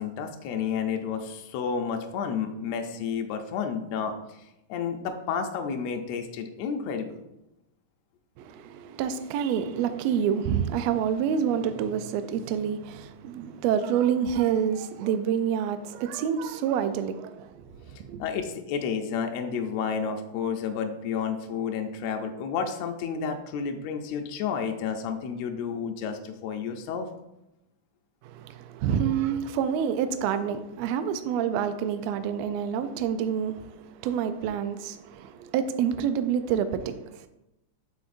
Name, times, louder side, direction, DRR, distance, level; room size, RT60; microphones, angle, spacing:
voice 1, 0.0-4.4 4.7-7.2 18.2-27.1, left 6 dB, 80° left, 1.6 m, -31 dB
voice 2, 8.4-18.2 28.2-37.3, right 8 dB, 85° right, 1.5 m, -28 dB
8.0 x 6.5 x 2.5 m
omnidirectional pair, 3.6 m